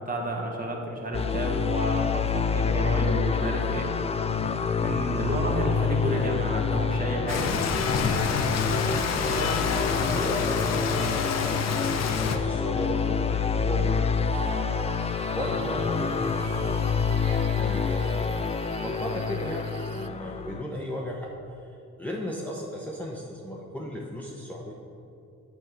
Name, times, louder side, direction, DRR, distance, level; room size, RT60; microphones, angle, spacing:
voice 1, 0.0-3.9 4.8-7.6 15.5-15.6, right 1 dB, 30° right, 0 dB, 1.4 m, -31 dB
sound 1, 1.1-20.6, left 5 dB, 20° left, 0.3 m, -27 dB
Rain, 7.3-12.4, left 5 dB, 60° left, 0.7 m, -28 dB
voice 2, 8.5-11.9 12.3-14.3 15.3-17.2 17.5-19.7 19.9-21.3 22.0-24.7, equal, 5° left, -3 dB, 0.8 m, -36 dB
sound 2, 14.3-20.1, right 10 dB, 55° right, 0.4 m, -43 dB
6.8 x 4.8 x 6.8 m, 2.7 s
cardioid pair, 90°, 30 cm